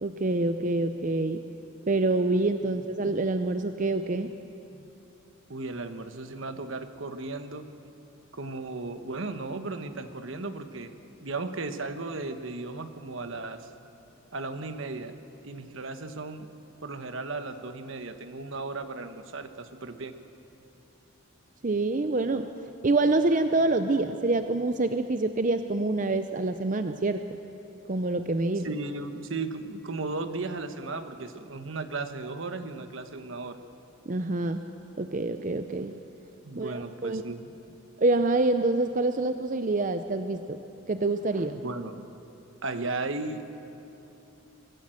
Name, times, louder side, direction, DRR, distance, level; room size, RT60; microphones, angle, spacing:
voice 1, 0.0-1.4 1.9-4.3 21.6-22.5 22.8-27.2 27.9-28.7 34.1-34.6 35.0-35.9 36.5-37.2 38.0-40.6 40.9-41.6, right 2 dB, 40° right, 8 dB, 0.6 m, -26 dB
voice 2, 5.5-7.7 8.3-10.9 11.2-13.7 14.3-15.2 15.4-16.5 16.8-20.2 28.6-33.6 36.4-37.5 41.6-42.1 42.6-43.4, right 3 dB, 70° right, 8 dB, 1.2 m, -35 dB
24.0 x 15.5 x 7.8 m, 2.9 s
head